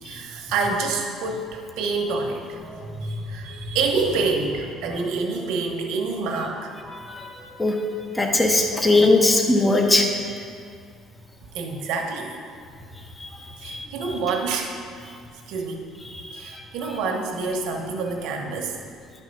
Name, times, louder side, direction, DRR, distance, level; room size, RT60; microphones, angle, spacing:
voice 1, 0.0-6.7 8.5-9.2 11.5-12.4 13.6-14.7 15.5-15.9 16.3-18.8, right 4 dB, 80° right, 2 dB, 1.1 m, -27 dB
voice 2, 8.2-10.1 13.7-13.9, left 2 dB, 15° left, 2 dB, 0.8 m, -19 dB
10.5 x 4.6 x 5.4 m, 2.2 s
cardioid pair, 125°, 0 cm